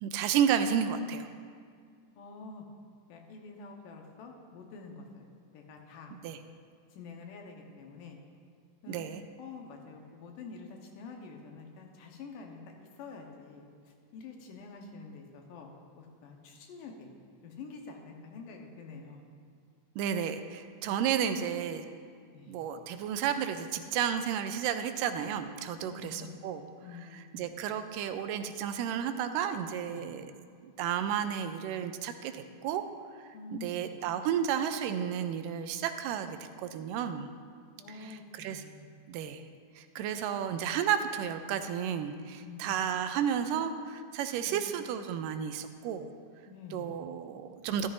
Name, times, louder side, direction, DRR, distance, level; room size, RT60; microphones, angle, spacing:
voice 1, 0.0-1.3 6.1-6.4 8.9-9.2 20.0-21.9 22.5-26.6 27.4-30.3 30.6-32.8 33.5-37.3 38.0-38.6 39.1-39.4 39.8-46.1 46.7-47.9, right 8 dB, 90° right, 9 dB, 2.2 m, -32 dB
voice 2, 2.2-2.7 3.1-6.2 6.9-8.2 8.8-9.0 9.4-17.1 17.4-19.2 22.3-22.6 25.8-26.4 26.8-27.4 29.9-30.1 33.3-34.0 37.8-38.8 42.4-42.8 44.4-44.7 46.5-46.9, left 4 dB, 80° left, 2 dB, 2.7 m, -47 dB
13.5 x 13.0 x 2.6 m, 2.1 s
omnidirectional pair, 3.8 m